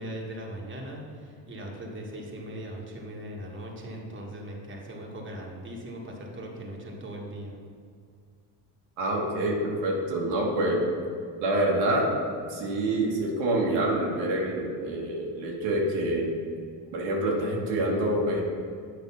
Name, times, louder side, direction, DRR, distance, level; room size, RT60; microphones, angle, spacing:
voice 1, 0.0-7.6, right 1 dB, 25° right, -1 dB, 1.4 m, -39 dB
voice 2, 9.0-10.8 11.4-12.1 12.5-16.3 16.9-18.4, right 1 dB, 80° right, -2 dB, 1.6 m, -26 dB
8.0 x 3.4 x 5.7 m, 2.2 s
supercardioid pair, 75°, 46 cm